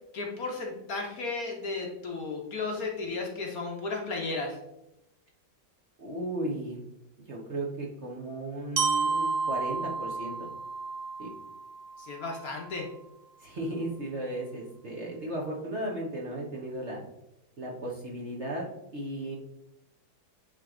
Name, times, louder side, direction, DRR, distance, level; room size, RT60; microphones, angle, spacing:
voice 1, 0.1-4.6 12.0-12.9, left 3 dB, 55° left, 0 dB, 1.2 m, -34 dB
voice 2, 6.0-6.8 7.3-10.5 11.2-11.3 13.4-17.0 17.6-18.7 18.9-19.4, right 1 dB, 45° right, -3 dB, 1.1 m, -35 dB
Glockenspiel, 8.8-12.7, right 4 dB, 80° right, 0.5 m, -32 dB
8.9 x 3.2 x 3.7 m, 0.87 s
omnidirectional pair, 2.1 m